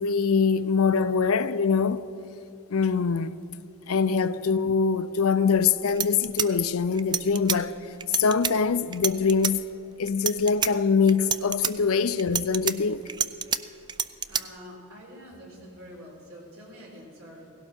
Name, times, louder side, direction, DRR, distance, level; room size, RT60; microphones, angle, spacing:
voice 1, 0.0-2.0 2.7-3.4 3.9-7.7 8.2-9.6 10.0-13.0, left 5 dB, 70° left, 0.5 m, -23 dB
sound 1, 5.5-5.6 5.9-7.6 8.0-8.5 8.9-9.5 10.1-10.7 11.1-11.7 12.2-13.6 13.9-14.4, right 8 dB, 20° right, 0.3 m, -27 dB
voice 2, 14.3-17.5, equal, 70° right, 4.0 m, -46 dB
17.5 x 16.5 x 4.4 m
head